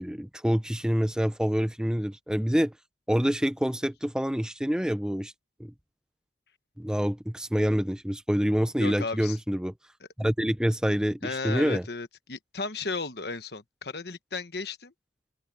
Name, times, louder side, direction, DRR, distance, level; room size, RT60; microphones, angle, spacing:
voice 1, 0.0-2.7 3.1-5.3 5.6-5.7 6.8-9.7 10.2-11.8, equal, 5° right, 0.6 m, -26 dB
voice 2, 8.8-9.4 11.2-14.9, left 4 dB, 60° left, 1.2 m, -34 dB
open air
head